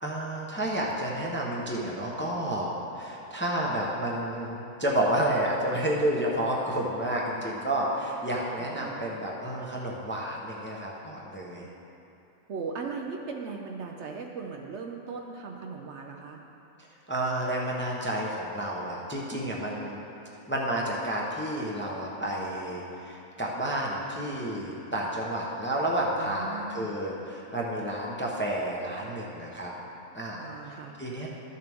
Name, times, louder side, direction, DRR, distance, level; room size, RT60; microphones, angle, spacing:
voice 1, 0.0-11.6 17.1-20.0 20.5-29.7 30.1-31.3, right 1 dB, 10° left, -3 dB, 0.7 m, -30 dB
voice 2, 8.6-9.0 12.5-16.4 26.2-26.9 30.4-30.9, right 4 dB, 65° right, 1 dB, 0.8 m, -38 dB
12.5 x 6.7 x 3.5 m, 2.9 s
omnidirectional pair, 1.4 m